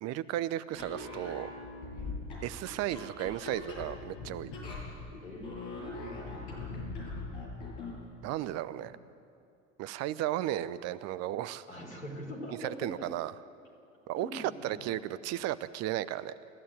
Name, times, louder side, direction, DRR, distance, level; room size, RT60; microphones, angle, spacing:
voice 1, 0.0-1.5 2.4-4.5 8.2-9.0 9.8-11.7 12.6-13.3 14.1-16.3, right 13 dB, 40° right, 16 dB, 0.9 m, -34 dB
sound 1, 0.7-8.0, left 3 dB, 60° left, 7.8 m, -41 dB
voice 2, 1.9-2.3 5.2-6.7 8.7-8.9 11.7-13.1 14.1-14.9, equal, 80° left, 1 dB, 4.5 m, -44 dB
27.5 x 14.5 x 9.2 m, 2.5 s
figure-of-eight pair, 70°, 39 cm